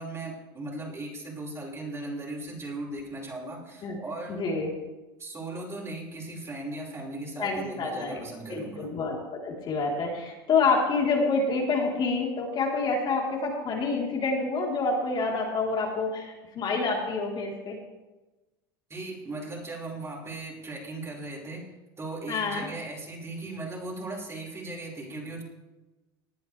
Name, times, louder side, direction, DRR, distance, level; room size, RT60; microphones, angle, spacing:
voice 1, 0.0-4.4 5.2-8.9 18.9-21.7 22.0-25.4, right 2 dB, 20° right, -3 dB, 5.5 m, -37 dB
voice 2, 4.3-4.7 7.4-8.2 8.5-17.8 22.3-22.7, left 4 dB, 40° left, -2 dB, 4.0 m, -27 dB
19.5 x 11.0 x 3.5 m, 1.1 s
hypercardioid pair, 100°, 12 cm